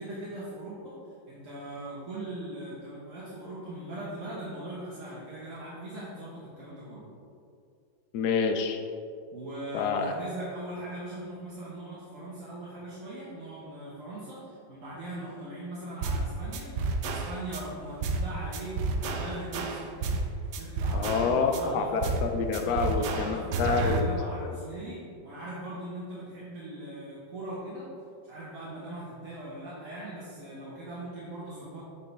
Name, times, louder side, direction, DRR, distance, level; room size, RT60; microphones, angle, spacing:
voice 1, 0.0-7.0 9.3-19.8 20.6-22.0 22.6-27.9 28.2-31.8, right 1 dB, 45° right, -9 dB, 1.4 m, -40 dB
voice 2, 8.1-8.8 9.7-10.1 20.9-24.1, left 5 dB, 70° left, 4 dB, 1.0 m, -27 dB
sound 1, 16.0-16.3 16.5-17.6 18.0-18.3 18.5-20.3 20.5-21.6 22.0-22.3 22.5-24.0, right 3 dB, 70° right, 1.1 m, -30 dB
7.3 x 5.4 x 3.3 m, 2.4 s
omnidirectional pair, 2.1 m